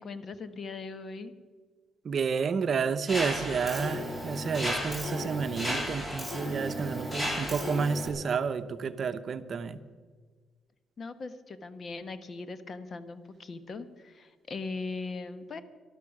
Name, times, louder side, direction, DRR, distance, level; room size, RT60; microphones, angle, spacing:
voice 1, 0.0-1.3 11.0-15.6, left 3 dB, 45° left, 12 dB, 1.1 m, -39 dB
voice 2, 2.0-9.8, right 5 dB, 50° right, 11 dB, 0.8 m, -30 dB
Mechanisms, 3.1-8.1, equal, 20° left, 3.0 m, -34 dB
13.0 x 12.0 x 6.0 m, 1.5 s
cardioid pair, 90°, 0 cm